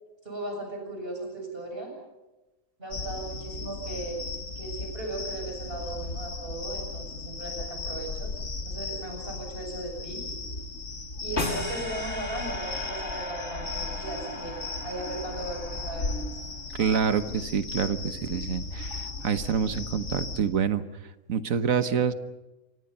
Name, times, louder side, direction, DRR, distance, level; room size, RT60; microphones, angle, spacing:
voice 1, 0.2-1.9 2.8-4.2 4.6-8.3 8.7-10.3 11.2-16.3, right 2 dB, 45° right, 2 dB, 7.4 m, -37 dB
sound 1, 2.9-20.4, left 3 dB, 70° left, 2.1 m, -36 dB
sound 2, 11.4-16.6, left 2 dB, 55° left, 3.5 m, -36 dB
voice 2, 16.8-20.9 21.3-22.1, right 7 dB, 90° right, 11 dB, 1.6 m, -27 dB
28.0 x 24.0 x 5.6 m, 1.1 s
omnidirectional pair, 1.4 m